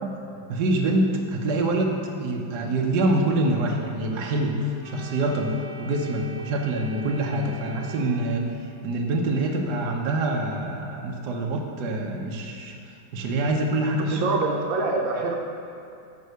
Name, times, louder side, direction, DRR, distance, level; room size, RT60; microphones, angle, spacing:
voice 1, 0.0-8.5 8.8-12.8 13.1-14.2, right 2 dB, 60° right, 1 dB, 1.4 m, -25 dB
Organ, 4.8-8.8, equal, 45° right, 2.3 m, -43 dB
voice 2, 14.1-15.4, right 3 dB, 80° right, 1 dB, 1.6 m, -25 dB
9.5 x 5.6 x 6.6 m, 2.5 s
omnidirectional pair, 2.2 m